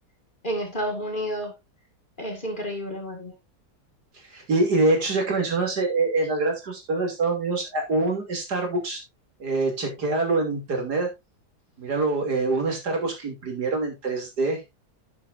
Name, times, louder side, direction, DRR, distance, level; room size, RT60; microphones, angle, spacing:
voice 1, 0.4-1.5 2.2-3.3, equal, 30° left, 2.4 m, -30 dB
voice 2, 4.3-9.0 9.4-11.1 11.8-14.6, right 3 dB, 75° right, 3.6 m, -25 dB
10.0 x 9.0 x 2.7 m
omnidirectional pair, 1.7 m